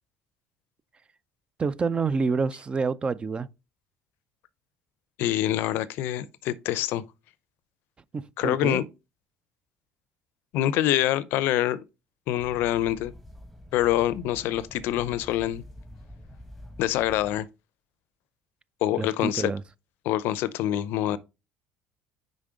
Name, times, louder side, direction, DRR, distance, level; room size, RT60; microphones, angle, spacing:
voice 1, 1.6-3.5 8.1-8.8 19.0-19.6, right 4 dB, 25° right, 0.4 m, -28 dB
voice 2, 5.2-7.0 8.4-8.8 10.5-11.8 12.3-13.1 13.7-15.6 16.8-17.5 18.8-19.5 20.0-21.2, left 13 dB, 70° left, 0.5 m, -25 dB
sound 1, 12.4-17.4, left 1 dB, ahead, 1.0 m, -46 dB
5.2 x 5.1 x 3.6 m
supercardioid pair, 95°, 4 cm